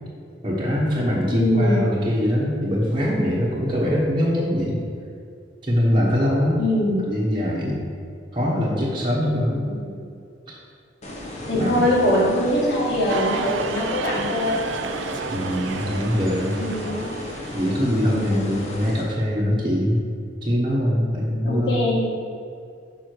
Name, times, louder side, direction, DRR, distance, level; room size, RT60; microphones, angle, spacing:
voice 1, 0.4-4.8 5.6-6.6 7.1-7.9 8.3-9.7 10.5-10.6 11.5-11.9 15.3-16.5 17.5-20.0 20.4-21.8, equal, 25° right, -6 dB, 1.2 m, -22 dB
voice 2, 1.3-1.8 6.6-7.0 9.7-9.9 11.5-14.6 16.6-17.1 18.1-18.6 21.4-22.1, left 1 dB, 65° left, -4 dB, 1.9 m, -23 dB
sound 1, 11.0-19.0, left 1 dB, 35° left, 1.2 m, -34 dB
sound 2, 13.1-17.9, right 6 dB, 85° right, 0.4 m, -32 dB
6.4 x 5.6 x 4.7 m, 2.4 s
head